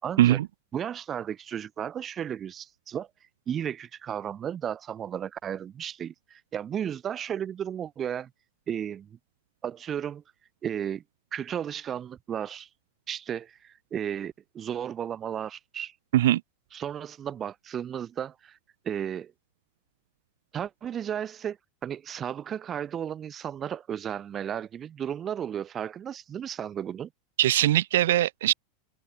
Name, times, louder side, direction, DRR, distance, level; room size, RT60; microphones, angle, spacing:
voice 1, 0.0-0.4 0.7-3.1 3.5-8.3 8.7-9.2 9.6-10.2 10.6-11.0 11.3-12.7 13.1-15.9 16.7-18.6 18.8-19.3 20.5-21.6 21.8-27.1, right 9 dB, 20° right, 5.3 m, -34 dB
voice 2, 27.4-28.5, right 13 dB, 80° right, 1.0 m, -21 dB
open air
supercardioid pair, 160°, 0 cm